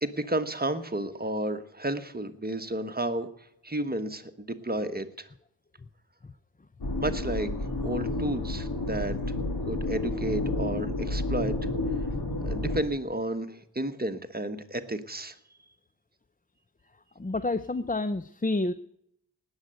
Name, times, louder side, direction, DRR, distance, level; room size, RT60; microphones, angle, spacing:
voice 1, 0.0-3.3 3.6-5.3 7.0-7.5 7.8-9.1 9.7-11.5 12.4-15.3, right 1 dB, 20° right, 8 dB, 1.3 m, -32 dB
sound 1, 6.8-12.8, left 2 dB, 60° left, 2.9 m, -30 dB
voice 2, 17.2-18.7, left 2 dB, 20° left, 13 dB, 0.6 m, -29 dB
18.5 x 8.1 x 7.7 m, 0.73 s
wide cardioid pair, 65°, 42 cm